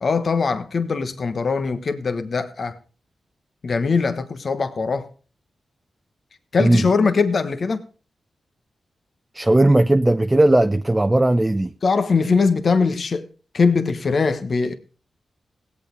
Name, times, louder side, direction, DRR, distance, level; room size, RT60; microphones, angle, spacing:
voice 1, 0.0-2.8 3.6-5.1 6.5-7.8 11.8-13.3 13.5-14.8, left 4 dB, 60° left, 1.3 m, -21 dB
voice 2, 9.3-11.7, right 1 dB, 20° right, 0.7 m, -17 dB
17.0 x 8.5 x 5.2 m
cardioid pair, 50°, 0 cm